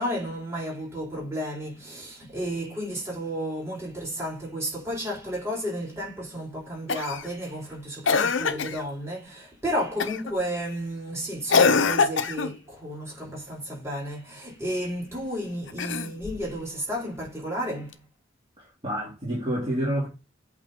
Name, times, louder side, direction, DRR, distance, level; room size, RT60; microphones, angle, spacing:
voice 1, 0.0-18.0, equal, 15° right, 4.8 m, -32 dB
Cough, 6.9-7.3 8.1-8.8 10.0-10.3 11.5-12.6 15.7-16.5 17.9-18.0, left 5 dB, 70° left, 0.7 m, -23 dB
voice 2, 18.6-20.1, right 1 dB, 30° right, 2.7 m, -28 dB
8.3 x 4.1 x 4.3 m
head